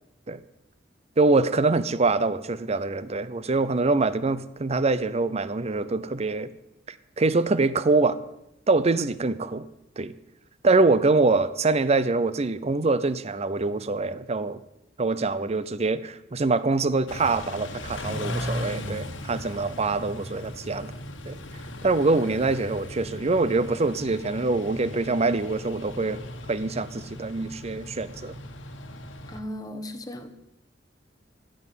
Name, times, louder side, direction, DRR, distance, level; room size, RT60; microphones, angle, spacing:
voice 1, 1.2-6.5 7.2-8.2 8.7-9.7 10.0-10.1 10.6-14.6 15.0-20.9 21.3-21.4 21.8-26.2 26.5-28.3, right 3 dB, 35° right, 15 dB, 0.6 m, -24 dB
Car / Idling / Accelerating revving vroom, 17.1-29.4, left 1 dB, 85° left, 1.4 m, -37 dB
voice 2, 29.3-30.3, equal, 20° left, 6 dB, 1.2 m, -36 dB
15.0 x 6.4 x 9.1 m, 0.88 s
head